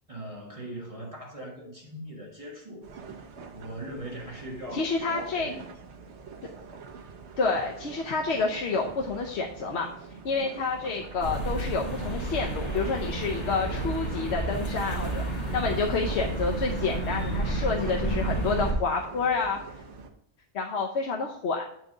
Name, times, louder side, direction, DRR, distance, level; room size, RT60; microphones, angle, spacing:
voice 1, 0.1-2.9 3.5-5.6, right 1 dB, 30° right, 1.5 m, -40 dB
sound 1, 2.8-20.1, right 4 dB, 75° right, 1.1 m, -44 dB
voice 2, 4.7-5.5 7.4-9.9 10.2-19.6 20.5-21.7, left 4 dB, 75° left, 1.0 m, -29 dB
Urban ambience Sennheiser Ambeo VR headset test, 11.2-18.7, right 2 dB, 40° left, 1.9 m, -31 dB
8.1 x 4.5 x 3.8 m
omnidirectional pair, 1.2 m